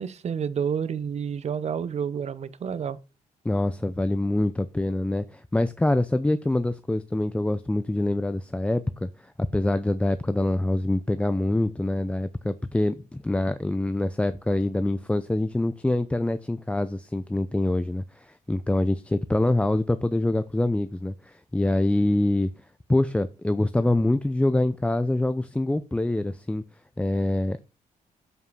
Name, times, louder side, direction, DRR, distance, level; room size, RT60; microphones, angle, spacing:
voice 1, 0.0-3.0, right 7 dB, 45° right, 0.8 m, -29 dB
voice 2, 3.4-22.5 22.9-26.6 27.0-27.6, left 1 dB, 10° left, 0.5 m, -25 dB
7.5 x 5.3 x 4.8 m
cardioid pair, 90°, 15 cm